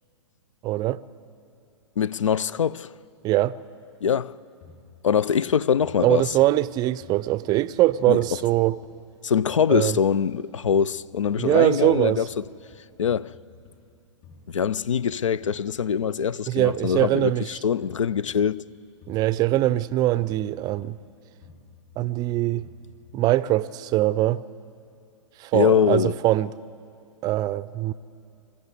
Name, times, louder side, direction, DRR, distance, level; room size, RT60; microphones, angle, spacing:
voice 1, 0.6-1.0 3.2-3.6 6.0-8.8 9.7-10.0 11.4-12.2 16.5-17.5 19.1-21.0 22.0-22.7 23.1-24.4 25.4-26.5 27.2-27.9, right 16 dB, 25° right, 0.5 m, -22 dB
voice 2, 2.0-2.9 4.0-4.4 5.0-6.3 8.1-8.2 9.2-12.4 13.0-13.3 14.5-18.6 25.5-26.1, left 7 dB, 80° left, 0.5 m, -23 dB
sound 1, 4.6-6.7 7.0-9.2 9.4-11.5 11.8-13.9 14.2-16.2 16.6-18.7 19.0-21.1 21.4-23.5, left 4 dB, 40° left, 5.9 m, -51 dB
24.0 x 13.5 x 8.3 m
figure-of-eight pair, 115°, 16 cm